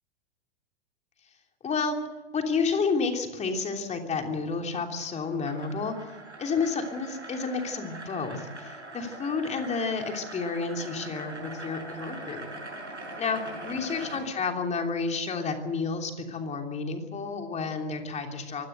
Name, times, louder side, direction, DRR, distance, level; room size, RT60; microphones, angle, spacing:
voice 1, 1.6-2.0 2.3-5.9 6.4-12.5 13.2-18.7, left 4 dB, 20° left, 4 dB, 3.1 m, -30 dB
sound 1, 4.7-14.2, right 2 dB, 85° right, 6.3 m, -42 dB
24.0 x 17.0 x 8.0 m, 1.1 s
figure-of-eight pair, 95°, 35 cm